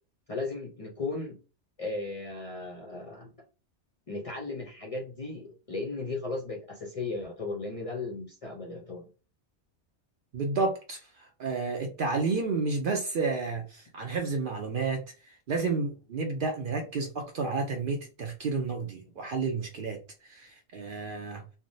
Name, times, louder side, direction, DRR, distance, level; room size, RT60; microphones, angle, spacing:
voice 1, 0.3-1.4 1.8-3.3 4.1-9.1, left 3 dB, 45° left, 0.5 m, -36 dB
voice 2, 10.3-21.4, right 4 dB, 60° right, 0.6 m, -31 dB
3.3 x 2.1 x 2.6 m
omnidirectional pair, 1.2 m